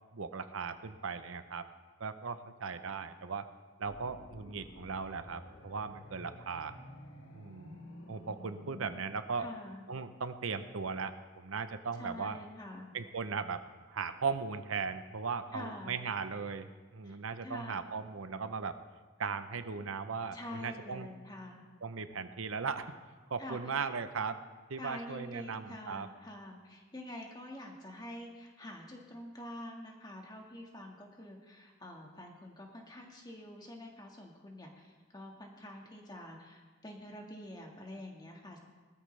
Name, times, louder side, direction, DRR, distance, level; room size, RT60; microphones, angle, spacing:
voice 1, 0.1-1.7 2.0-3.5 3.8-6.8 7.3-7.8 8.1-9.5 9.9-12.4 12.9-13.6 13.9-18.8 19.2-21.1 21.8-22.9 23.3-24.4 24.7-26.1, right 5 dB, 80° right, 10 dB, 0.7 m, -38 dB
sound 1, 3.9-8.9, left 1 dB, 80° left, 1.8 m, -51 dB
voice 2, 9.4-9.8 12.0-13.0 15.5-15.9 17.0-17.8 20.3-21.6 23.4-23.6 24.8-38.6, left 1 dB, 20° left, 1 dB, 1.7 m, -47 dB
19.5 x 13.5 x 3.3 m, 1.4 s
head